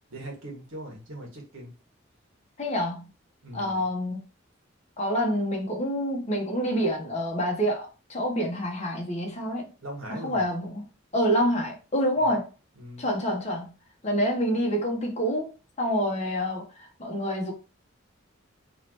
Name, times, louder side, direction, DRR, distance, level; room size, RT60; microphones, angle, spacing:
voice 1, 0.1-1.7 3.4-3.8 9.8-10.4 12.2-12.4 12.8-13.1, right 1 dB, 85° right, 1.6 m, -40 dB
voice 2, 2.6-3.1 3.5-4.2 5.0-9.7 10.1-10.8 11.1-12.5 13.0-13.7 14.0-15.5 15.8-17.5, equal, 35° left, 1.1 m, -27 dB
3.8 x 3.1 x 3.0 m
head